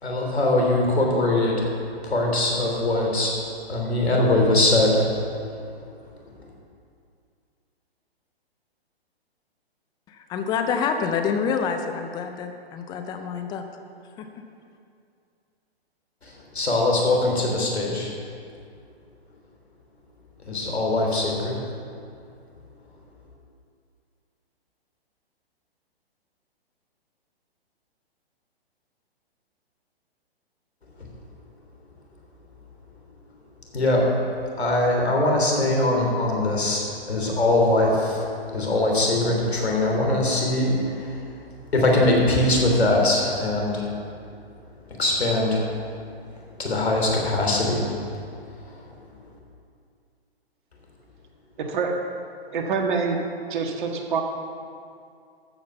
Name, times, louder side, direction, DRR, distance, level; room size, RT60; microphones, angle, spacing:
voice 1, 0.0-1.7 2.0-3.3 3.7-5.1 16.5-18.1 20.5-21.6 33.7-34.1 34.6-38.2 38.5-41.2 41.7-43.9 45.0-45.7 46.6-47.8, left 2 dB, 85° left, -1 dB, 3.4 m, -21 dB
voice 2, 10.1-13.6 14.2-14.3, left 6 dB, 15° left, 5 dB, 0.5 m, -27 dB
voice 3, 51.6-51.9 52.5-53.2 53.5-54.2, right 5 dB, 50° right, 2 dB, 1.8 m, -25 dB
13.5 x 5.8 x 7.0 m, 2.4 s
hypercardioid pair, 130°, 31 cm